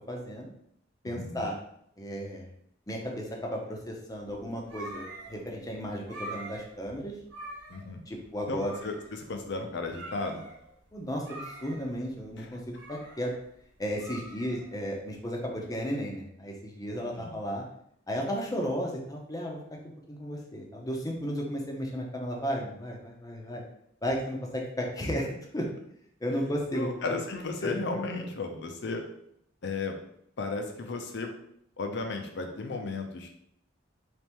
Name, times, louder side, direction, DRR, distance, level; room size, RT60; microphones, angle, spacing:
voice 1, 0.1-0.5 1.0-1.6 2.0-2.5 2.9-7.1 8.1-8.8 10.9-13.3 13.8-17.6 18.1-19.6 20.1-23.6 24.0-25.3 25.5-25.7 26.2-27.1 27.6-27.7 28.2-28.3, equal, 20° left, 0 dB, 0.7 m, -34 dB
voice 2, 1.0-1.5 7.7-8.0 8.5-10.5 12.4-12.5 17.2-17.3 26.8-29.0 29.6-30.0 30.4-31.3 31.8-33.4, left 3 dB, 65° left, 4 dB, 0.6 m, -34 dB
sound 1, 4.2-15.2, right 1 dB, 75° right, 1.0 m, -45 dB
3.5 x 3.2 x 3.0 m, 0.71 s
head